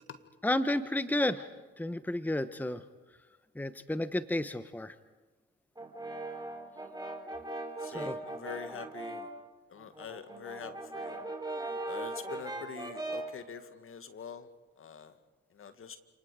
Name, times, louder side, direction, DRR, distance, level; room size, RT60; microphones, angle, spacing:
voice 1, 0.4-1.5 1.8-2.8 3.6-4.9 7.9-8.2, left 1 dB, 5° left, 12 dB, 1.1 m, -31 dB
Brass instrument, 5.8-9.4 9.8-13.4, right 2 dB, 15° right, 3.8 m, -39 dB
voice 2, 7.8-9.3 9.7-11.2 11.9-14.5 14.8-15.2 15.5-16.0, left 7 dB, 45° left, 9 dB, 2.0 m, -45 dB
29.0 x 28.0 x 5.0 m, 1.3 s
hypercardioid pair, 45°, 29 cm